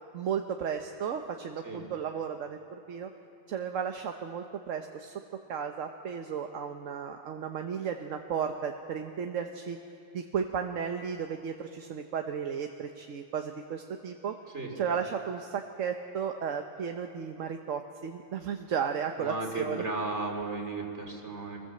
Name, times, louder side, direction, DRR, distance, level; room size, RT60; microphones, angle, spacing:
voice 1, 0.1-3.1 3.5-5.1 5.5-9.8 10.1-14.4 14.8-19.8, right 7 dB, 80° right, 5 dB, 1.3 m, -34 dB
voice 2, 14.5-14.8 19.2-21.6, right 3 dB, 60° right, 2 dB, 3.2 m, -35 dB
23.5 x 19.5 x 7.7 m, 2.5 s
omnidirectional pair, 1.3 m